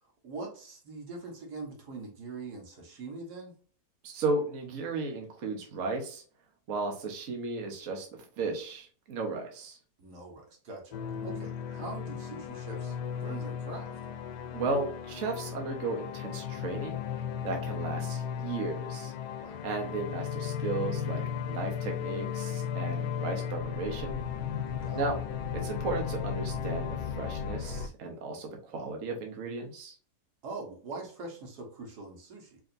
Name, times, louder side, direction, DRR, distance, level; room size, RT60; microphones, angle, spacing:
voice 1, 0.0-3.5 10.0-14.0 19.4-19.6 24.6-25.0 30.4-32.6, right 3 dB, 80° right, 1 dB, 1.7 m, -43 dB
voice 2, 4.0-6.2 6.7-9.8 14.5-19.1 19.6-24.2 24.9-25.2 25.5-29.9, right 3 dB, 60° right, 2 dB, 1.1 m, -35 dB
sound 1, 10.9-27.9, left 7 dB, 90° left, 1.2 m, -35 dB
4.8 x 2.8 x 2.5 m, 0.43 s
omnidirectional pair, 1.7 m